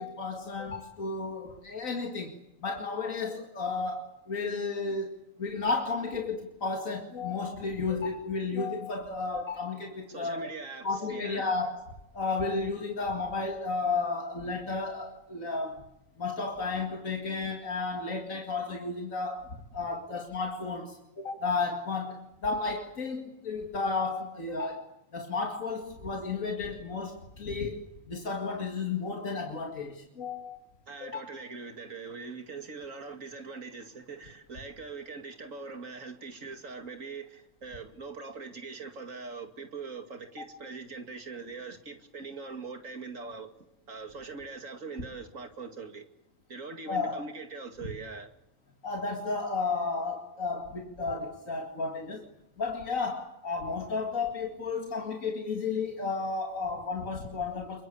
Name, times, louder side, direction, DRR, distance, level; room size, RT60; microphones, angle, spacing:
voice 1, 0.0-2.4 2.6-10.5 10.8-11.7 12.1-15.8 16.2-19.5 19.7-30.6 31.0-31.2 46.9-47.2 48.8-52.3 52.6-57.8, left 4 dB, 85° left, 2.7 m, -33 dB
voice 2, 10.1-11.5 30.9-43.5 43.9-46.0 46.5-48.3, right 4 dB, 75° right, 2.7 m, -42 dB
27.5 x 23.0 x 8.6 m
omnidirectional pair, 1.4 m